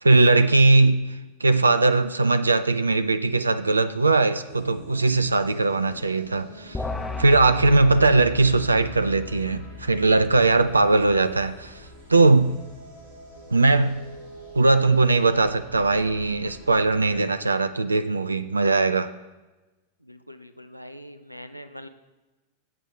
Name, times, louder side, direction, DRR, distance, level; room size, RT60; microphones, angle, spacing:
voice 1, 0.0-6.8 7.2-12.6 13.5-14.0 14.5-19.1, right 3 dB, 80° right, 0.4 m, -20 dB
sound 1, 4.5-17.1, right 1 dB, 65° right, 4.0 m, -46 dB
sound 2, 6.7-12.3, left 4 dB, 10° left, 0.9 m, -37 dB
voice 2, 20.0-21.9, equal, 90° left, 0.7 m, -43 dB
19.5 x 8.1 x 3.3 m
figure-of-eight pair, 90°, 0 cm